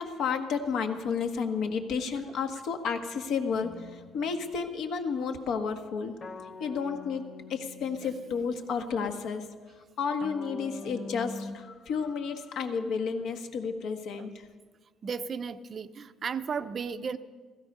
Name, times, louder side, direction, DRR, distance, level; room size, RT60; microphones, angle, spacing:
voice 1, 0.0-6.2 6.6-7.2 7.5-9.5 9.8-14.5, left 5 dB, 65° left, 5 dB, 1.4 m, -32 dB
sound 1, 3.6-4.5 6.2-8.5 10.2-11.6, left 4 dB, 30° left, 0.6 m, -43 dB
voice 2, 15.0-17.2, right 6 dB, 35° right, 11 dB, 0.6 m, -34 dB
16.5 x 15.5 x 5.4 m, 1.4 s
cardioid pair, 160°, 0 cm